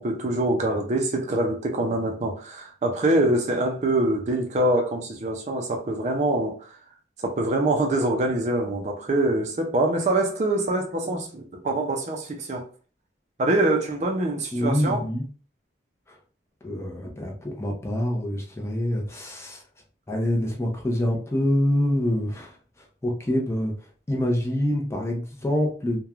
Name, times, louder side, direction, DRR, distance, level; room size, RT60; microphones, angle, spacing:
voice 1, 0.0-6.8 7.2-12.7 13.4-15.0, right 1 dB, 40° right, 0.4 m, -24 dB
voice 2, 14.5-15.2 16.1-16.2 16.6-19.6 20.1-22.6 23.0-23.7 24.1-26.0, left 1 dB, 15° left, 0.5 m, -26 dB
3.0 x 2.2 x 2.3 m
head